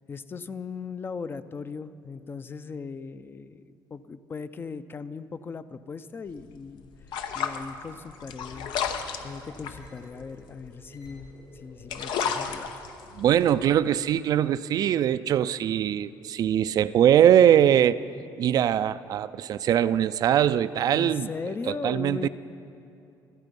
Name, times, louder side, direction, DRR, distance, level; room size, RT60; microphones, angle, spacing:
voice 1, 0.0-6.9 7.3-8.7 9.2-12.8 20.9-22.3, left 5 dB, 30° left, 13 dB, 0.5 m, -38 dB
sound 1, 6.3-11.4 11.7-14.2, left 7 dB, 90° left, 0.9 m, -33 dB
sound 2, 8.2-13.6, left 2 dB, 55° left, 4.4 m, -53 dB
voice 2, 13.2-18.0 18.4-21.3 21.7-22.3, right 10 dB, 55° right, 14 dB, 0.4 m, -22 dB
26.0 x 8.9 x 5.3 m, 2.7 s
cardioid pair, 130°, 8 cm